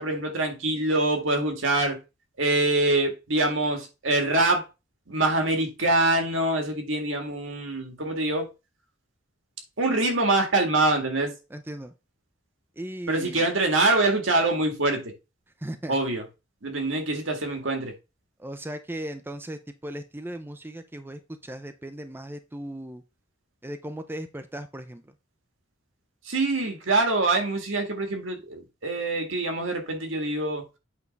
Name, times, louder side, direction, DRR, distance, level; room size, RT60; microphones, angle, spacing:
voice 1, 0.0-2.0 2.4-4.7 5.1-8.5 9.8-11.4 13.1-15.0 15.9-16.3 16.6-17.9 26.3-30.6, right 2 dB, 70° right, 1.9 m, -24 dB
voice 2, 11.5-11.9 12.8-13.5 15.6-16.0 18.4-23.0 23.6-25.1, right 1 dB, 10° right, 0.6 m, -37 dB
8.4 x 3.6 x 5.3 m
head